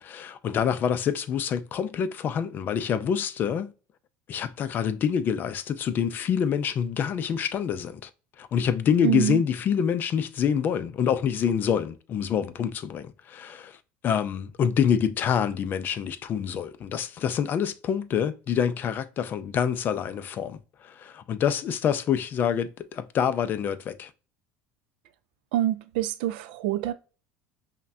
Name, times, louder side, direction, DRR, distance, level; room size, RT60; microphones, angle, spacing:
voice 1, 0.0-3.7 4.3-8.1 8.4-13.8 14.0-24.1, left 8 dB, 40° left, 0.4 m, -26 dB
voice 2, 9.0-9.4 25.5-26.9, right 12 dB, 90° right, 0.4 m, -26 dB
5.6 x 2.2 x 2.6 m
supercardioid pair, 125°, 5 cm